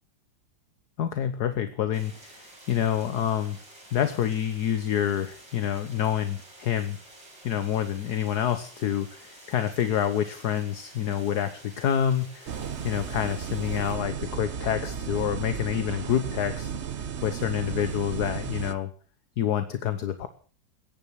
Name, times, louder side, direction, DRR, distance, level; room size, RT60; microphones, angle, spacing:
voice 1, 1.0-2.4 2.7-3.6 3.9-7.0 7.4-12.6 12.8-16.7 17.2-18.9 19.4-20.3, left 9 dB, 60° left, 10 dB, 1.6 m, -27 dB
sound 1, 1.9-13.9, right 1 dB, 80° right, 8.6 m, -50 dB
sound 2, 12.5-18.7, right 7 dB, 50° right, 0.9 m, -34 dB
21.5 x 10.5 x 6.3 m, 0.41 s
omnidirectional pair, 2.0 m